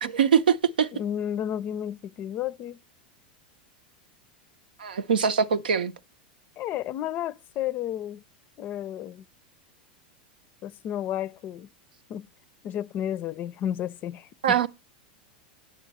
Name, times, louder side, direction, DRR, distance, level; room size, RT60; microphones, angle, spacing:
voice 1, 0.0-0.9 4.8-5.9 14.4-14.7, right 7 dB, 85° right, 0.6 m, -23 dB
voice 2, 0.9-2.8 6.6-8.2 8.6-9.2 10.6-11.7 12.1-12.3 12.6-14.6, left 10 dB, 40° left, 0.5 m, -32 dB
9.3 x 7.3 x 4.1 m
hypercardioid pair, 100°, 5 cm